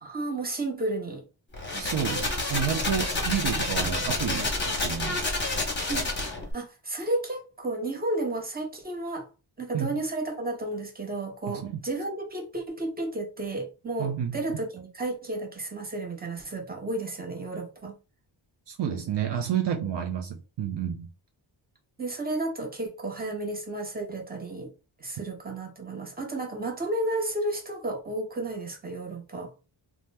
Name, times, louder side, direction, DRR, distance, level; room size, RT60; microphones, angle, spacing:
voice 1, 0.0-1.3 1.7-2.2 5.9-9.3 9.6-17.9 22.0-24.7 25.0-29.5, right 2 dB, 20° right, 0.9 m, -32 dB
sound 1, 1.5-6.5, left 2 dB, 25° left, 0.9 m, -29 dB
voice 2, 1.7-5.2 9.7-9.9 11.5-11.8 14.0-14.4 18.7-21.1, right 9 dB, 60° right, 0.5 m, -30 dB
2.8 x 2.1 x 3.3 m
wide cardioid pair, 105°, 48 cm